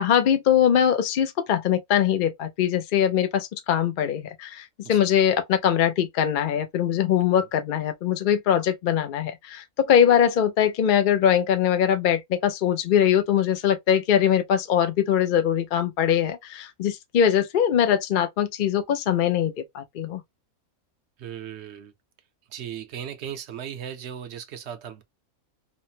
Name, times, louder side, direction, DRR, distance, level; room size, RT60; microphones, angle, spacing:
voice 1, 0.0-20.2, left 9 dB, 70° left, 0.5 m, -22 dB
voice 2, 21.2-21.9 22.5-25.0, right 9 dB, 60° right, 0.8 m, -37 dB
3.1 x 2.0 x 2.7 m
omnidirectional pair, 1.5 m